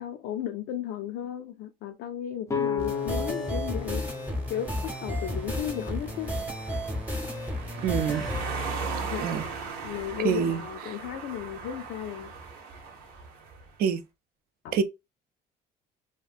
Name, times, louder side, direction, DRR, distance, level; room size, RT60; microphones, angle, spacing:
voice 1, 0.0-4.1 4.5-6.3 9.1-9.4 9.8-12.3 14.6-14.7, left 10 dB, 80° left, 0.4 m, -35 dB
sound 1, 2.5-6.3, left 6 dB, 20° left, 0.4 m, -34 dB
sound 2, 2.8-8.4, equal, 10° right, 0.8 m, -32 dB
sound 3, 3.4-13.7, right 4 dB, 90° right, 0.8 m, -39 dB
voice 2, 7.8-8.3 9.2-9.5 10.2-10.6 13.8-14.0 14.7-14.8, right 7 dB, 65° right, 0.4 m, -25 dB
2.7 x 2.4 x 2.4 m
cardioid pair, 110°, 17 cm